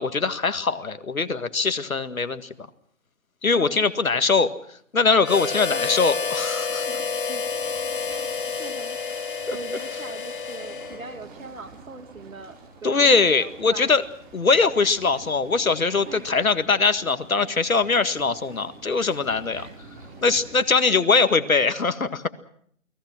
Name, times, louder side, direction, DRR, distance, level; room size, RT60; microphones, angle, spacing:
voice 1, 0.0-2.5 3.4-4.5 4.9-6.9 9.5-9.6 12.8-14.0 14.3-19.7 20.2-22.3, left 4 dB, 80° left, 11 dB, 2.0 m, -21 dB
voice 2, 3.5-3.9 5.7-6.0 6.8-7.4 8.1-9.0 9.5-12.6 12.8-14.0 16.1-16.3 19.5-19.8 20.5-20.6 20.9-21.3, right 3 dB, 70° right, 8 dB, 3.0 m, -41 dB
Harmonica, 5.2-11.2, left 5 dB, 40° left, 1.3 m, -29 dB
sound 1, 6.2-20.7, right 3 dB, 15° right, 4.0 m, -47 dB
29.0 x 20.0 x 6.1 m, 0.65 s
figure-of-eight pair, 165°, 41 cm